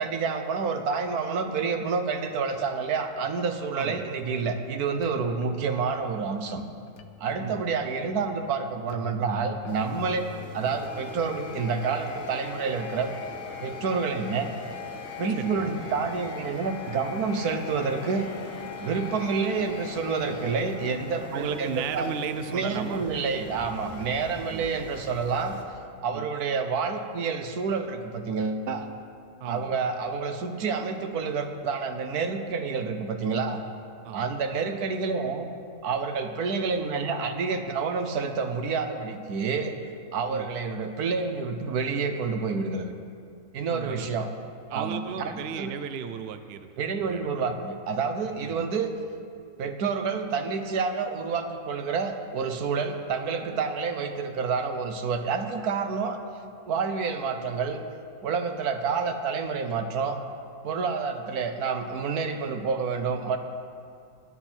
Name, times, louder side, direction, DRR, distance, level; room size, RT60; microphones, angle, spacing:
voice 1, 0.0-6.6 7.2-10.3 10.5-13.1 13.6-14.5 15.2-18.3 18.8-22.1 22.5-25.6 26.0-28.9 29.4-33.6 34.1-35.5 35.8-39.7 40.1-42.9 43.5-44.3 44.7-45.7 46.8-48.9 49.6-56.2 56.7-57.8 58.2-60.2 60.6-63.4, right 5 dB, 75° right, 7 dB, 1.4 m, -28 dB
voice 2, 3.7-4.1 7.4-7.6 15.3-15.7 21.3-23.0 24.5-24.7 26.1-26.3 29.4-29.7 34.0-34.2 40.3-40.5 43.7-44.1 44.7-46.7 47.0-47.5 48.4-48.7, right 7 dB, 60° right, 10 dB, 0.6 m, -35 dB
sound 1, 4.0-22.1, left 7 dB, 80° left, 0.4 m, -42 dB
sound 2, 9.7-25.6, equal, 5° left, 1.5 m, -45 dB
21.5 x 8.0 x 4.4 m, 2.3 s
omnidirectional pair, 1.6 m